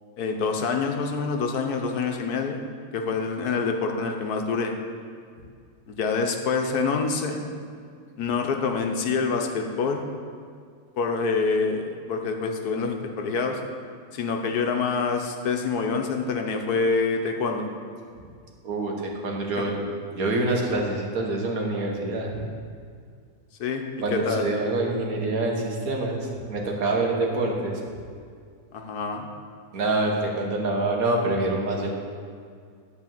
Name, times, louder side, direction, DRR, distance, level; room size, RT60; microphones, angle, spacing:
voice 1, 0.2-2.6 2.9-4.7 5.9-7.4 8.2-10.0 11.0-13.6 14.1-17.7 19.6-19.7 23.6-23.8 24.1-24.5 28.7-29.3, left 4 dB, 80° left, 3 dB, 1.4 m, -26 dB
voice 2, 18.6-19.8 20.2-22.5 24.0-27.8 29.7-31.9, right 2 dB, 70° right, 0 dB, 1.7 m, -26 dB
11.0 x 4.3 x 7.4 m, 2.2 s
omnidirectional pair, 1.6 m